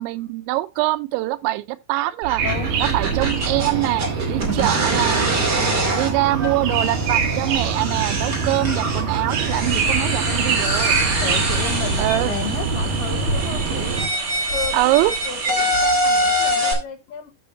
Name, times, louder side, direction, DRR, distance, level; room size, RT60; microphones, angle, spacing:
voice 1, 0.0-2.4 2.8-5.2 5.9-11.0 12.0-12.4 14.7-15.1, right 18 dB, 85° right, 3.0 m, -23 dB
sound 1, 2.2-16.7, right 1 dB, 30° right, 2.0 m, -25 dB
voice 2, 2.4-2.8 3.1-3.2 5.5-6.0 10.3-10.5 11.2-14.1 14.5-17.3, left 8 dB, 70° left, 3.2 m, -33 dB
sound 2, 2.4-14.1, right 5 dB, 60° right, 2.5 m, -25 dB
sound 3, 6.6-15.5, left 2 dB, 85° left, 1.1 m, -34 dB
14.0 x 5.6 x 2.6 m
omnidirectional pair, 5.3 m